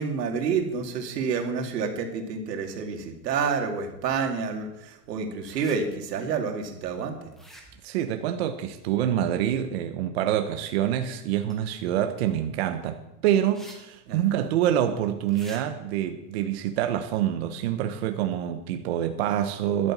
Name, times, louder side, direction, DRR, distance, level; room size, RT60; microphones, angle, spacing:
voice 1, 0.0-7.2 14.1-14.5, right 5 dB, 90° right, 4 dB, 2.6 m, -29 dB
sound 1, 5.5-5.8 7.3-7.9 11.5-11.6 13.5-13.8 14.1-14.2 15.3-15.6, right 1 dB, ahead, 0.6 m, -47 dB
voice 2, 7.8-19.9, right 11 dB, 40° right, 7 dB, 0.9 m, -26 dB
11.5 x 8.9 x 7.3 m, 0.92 s
supercardioid pair, 175°, 47 cm